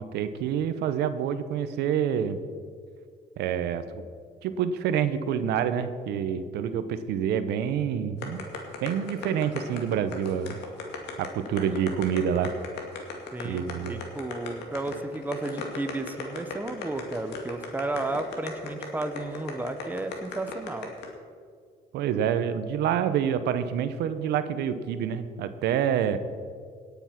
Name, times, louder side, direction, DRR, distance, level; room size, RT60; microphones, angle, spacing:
voice 1, 0.0-2.4 3.4-4.0 4.4-8.4 8.8-10.6 11.2-12.5 13.4-14.0 21.9-26.2, right 8 dB, 80° right, 11 dB, 0.8 m, -27 dB
sound 1, 8.2-21.1, left 5 dB, 85° left, 2.2 m, -37 dB
voice 2, 13.3-20.9, right 2 dB, 10° right, 8 dB, 0.9 m, -33 dB
17.5 x 7.1 x 5.9 m, 2.1 s
cardioid pair, 110°, 17 cm